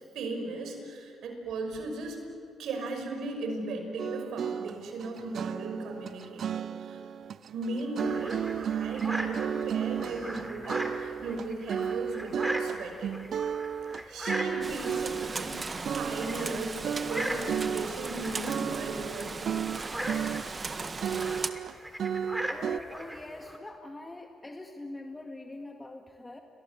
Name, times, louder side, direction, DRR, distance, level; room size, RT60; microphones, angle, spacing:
voice 1, 0.1-2.2 2.6-7.0 7.5-13.2 14.1-19.6, right 3 dB, 75° right, 4 dB, 5.6 m, -37 dB
sound 1, 4.0-15.6 15.9-16.6 16.8-19.2 19.5-20.8 21.0-22.8, right 8 dB, 60° right, 0.6 m, -33 dB
sound 2, 8.0-23.6, right 1 dB, 5° right, 3.6 m, -39 dB
Rain, 14.6-21.5, right 4 dB, 35° right, 1.7 m, -37 dB
voice 2, 22.5-26.4, left 2 dB, 20° left, 3 dB, 2.0 m, -43 dB
30.0 x 23.0 x 8.3 m, 2.5 s
cardioid pair, 75°, 0 cm